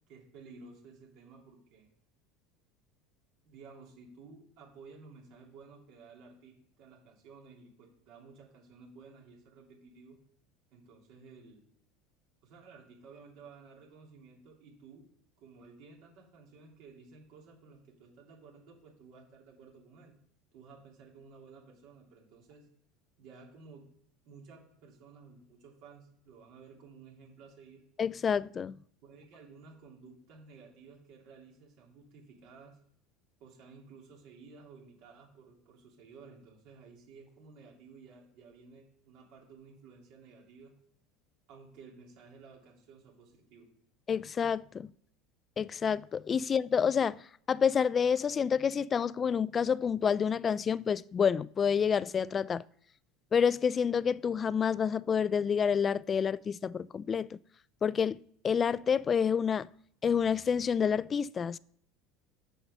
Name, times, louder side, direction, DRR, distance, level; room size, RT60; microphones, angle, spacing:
voice 1, 0.1-1.9 3.4-10.2 10.7-11.6 12.4-15.1 15.4-20.1 20.5-22.7 23.2-23.8 24.2-27.8 29.0-32.8 33.4-40.7 41.5-43.7, right 4 dB, 65° right, 3.1 m, -54 dB
voice 2, 28.0-28.7 44.1-44.9 45.6-47.2 47.5-52.6 53.3-57.4 57.8-58.2 58.4-59.7 60.0-61.6, left 7 dB, 30° left, 0.3 m, -28 dB
7.2 x 5.6 x 6.8 m
supercardioid pair, 110°, 0 cm